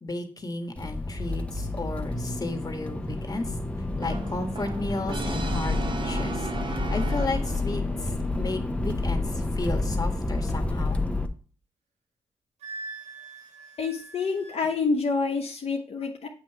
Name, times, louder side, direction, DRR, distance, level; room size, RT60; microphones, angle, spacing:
voice 1, 0.0-3.5 4.0-7.8 8.3-11.0, left 2 dB, 30° left, 4 dB, 1.4 m, -33 dB
Accelerating revving vroom, 0.8-11.3, left 2 dB, 10° left, 0.8 m, -29 dB
Brass instrument, 4.0-7.8, right 4 dB, 45° right, 0.8 m, -36 dB
Wind instrument woodwind instrument, 12.6-14.6, right 3 dB, 70° right, 1.3 m, -42 dB
voice 2, 13.8-16.3, left 4 dB, 60° left, 1 dB, 0.9 m, -27 dB
7.9 x 3.1 x 5.7 m, 0.40 s
cardioid pair, 55°, 12 cm